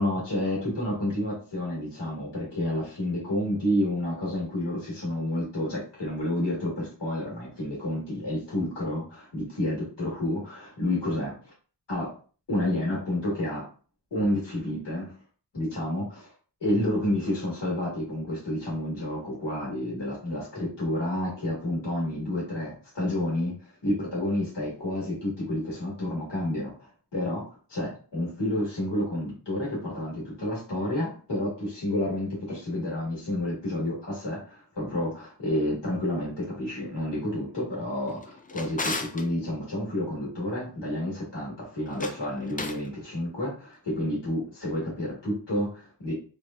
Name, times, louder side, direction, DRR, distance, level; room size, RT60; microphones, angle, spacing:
voice 1, 0.0-11.5 11.9-12.1 12.5-13.7 14.1-15.1 15.5-16.3 16.6-27.4 27.7-46.1, left 1 dB, 75° left, -5 dB, 1.4 m, -30 dB
Drawer open or close, 38.1-39.3 41.8-42.9, left 3 dB, 20° left, 0.3 m, -35 dB
3.3 x 2.0 x 2.4 m, 0.40 s
wide cardioid pair, 70°, 42 cm